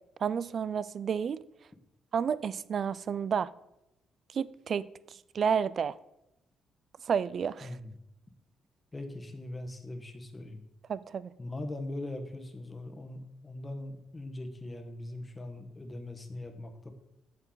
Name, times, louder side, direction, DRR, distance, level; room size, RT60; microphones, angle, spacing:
voice 1, 0.2-1.4 2.1-3.5 4.3-6.0 7.0-7.8 10.9-11.3, right 7 dB, 50° right, 18 dB, 0.4 m, -31 dB
voice 2, 7.6-7.9 8.9-10.6 11.4-16.9, left 1 dB, 20° left, 6 dB, 1.3 m, -41 dB
8.6 x 6.8 x 3.9 m, 0.89 s
cardioid pair, 90°, 0 cm